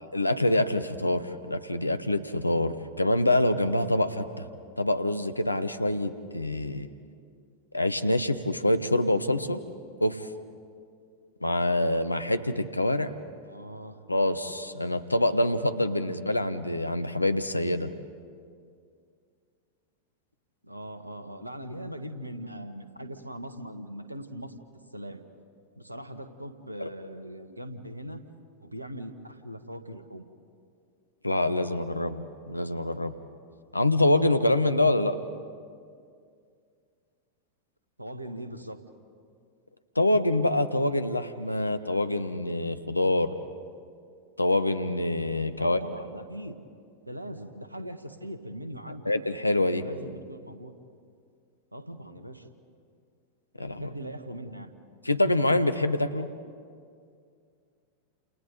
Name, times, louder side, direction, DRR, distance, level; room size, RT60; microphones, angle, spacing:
voice 1, 0.1-4.5 4.8-6.9 7.7-9.6 10.0-10.2 11.4-13.1 14.1-17.9 26.8-26.9 31.2-33.1 33.7-35.2 40.0-43.3 44.4-45.8 49.0-49.8 53.6-53.9 55.0-56.3, left 1 dB, 85° left, 11 dB, 0.9 m, -25 dB
voice 2, 13.4-14.0 20.6-24.6 24.9-25.2 25.8-28.2 28.6-30.3 38.0-38.8 45.6-46.5 47.0-49.1 49.7-50.7 51.7-52.5 53.7-54.7, equal, 85° right, 9 dB, 1.3 m, -40 dB
30.0 x 28.0 x 3.9 m, 2.3 s
figure-of-eight pair, 90°, 0 cm